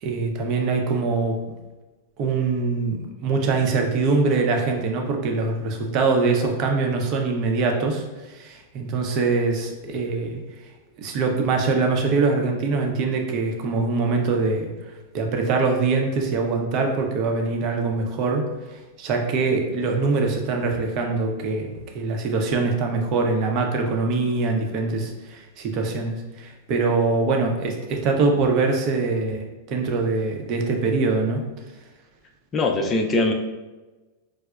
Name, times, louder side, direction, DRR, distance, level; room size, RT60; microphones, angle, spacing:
voice 1, 0.0-1.4 2.2-10.4 11.0-14.7 15.1-18.5 19.0-31.4, right 4 dB, 45° right, 2 dB, 0.6 m, -23 dB
voice 2, 32.5-33.3, left 2 dB, 25° left, 2 dB, 0.4 m, -21 dB
4.7 x 2.0 x 2.3 m, 1.2 s
hypercardioid pair, 120°, 0 cm